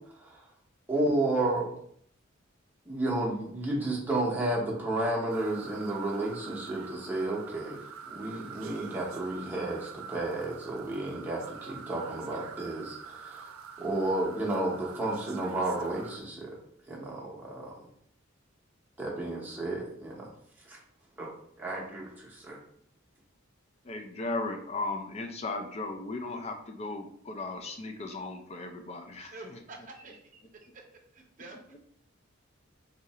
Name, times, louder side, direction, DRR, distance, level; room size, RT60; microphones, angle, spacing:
voice 1, 0.9-1.7 2.9-7.8 8.1-13.5 13.8-16.6 16.9-17.8 19.0-20.3 20.7-20.8 21.2-21.3 21.6-22.6, right 2 dB, 10° right, -4 dB, 0.8 m, -32 dB
sound 1, 5.3-16.2, right 6 dB, 80° right, 0.3 m, -45 dB
voice 2, 23.8-29.6, left 2 dB, 30° left, 5 dB, 0.4 m, -36 dB
voice 3, 29.3-30.2 30.6-30.7 31.1-31.8, right 2 dB, 40° right, 2 dB, 0.6 m, -47 dB
2.8 x 2.5 x 4.1 m, 0.66 s
head